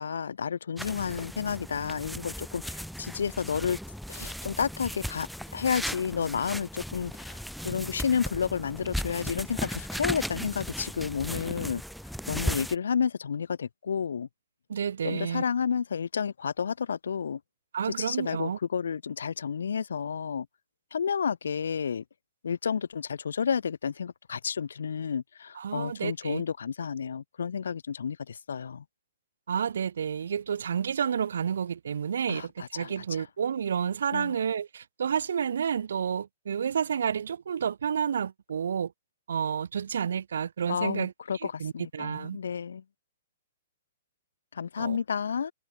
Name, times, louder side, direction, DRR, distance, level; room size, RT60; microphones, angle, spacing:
voice 1, 0.0-3.8 4.1-5.3 5.5-7.4 7.6-11.8 12.3-14.3 15.0-17.4 18.0-20.5 20.9-22.0 22.4-28.8 32.3-33.2 34.1-34.3 40.7-42.8 44.5-45.5, left 7 dB, 85° left, 1.5 m, -31 dB
sound 1, 0.8-12.8, equal, ahead, 0.6 m, -37 dB
voice 2, 14.7-15.4 17.7-18.6 25.6-26.4 29.5-38.9 39.3-42.4 44.8-45.0, right 7 dB, 80° right, 0.3 m, -30 dB
hypercardioid pair, 135°, 0 cm